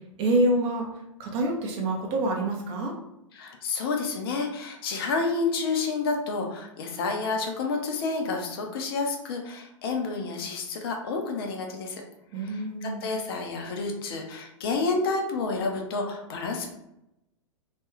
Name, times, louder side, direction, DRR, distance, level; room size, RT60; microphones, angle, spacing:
voice 1, 0.2-0.9 1.2-2.9 12.3-13.1, right 1 dB, 30° right, 0 dB, 0.6 m, -26 dB
voice 2, 3.3-12.0 12.4-16.7, left 4 dB, 45° left, 3 dB, 0.5 m, -29 dB
2.4 x 2.2 x 3.0 m, 0.85 s
figure-of-eight pair, 100°, 17 cm